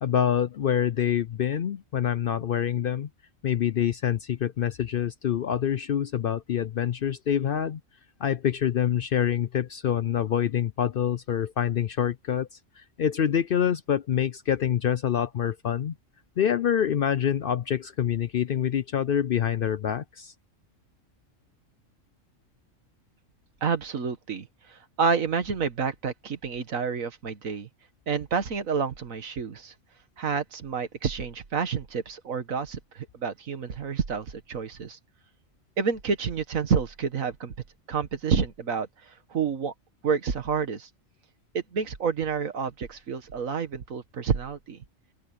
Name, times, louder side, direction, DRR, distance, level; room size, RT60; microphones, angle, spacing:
voice 1, 0.0-3.1 3.4-7.8 8.2-12.5 12.8-15.9 16.4-20.3, left 9 dB, 60° left, 0.6 m, -26 dB
voice 2, 23.6-27.7 28.1-29.7 30.2-35.0 35.8-37.5 37.9-39.7 40.0-40.9 41.5-44.8, right 6 dB, 85° right, 1.9 m, -29 dB
open air
omnidirectional pair, 1.4 m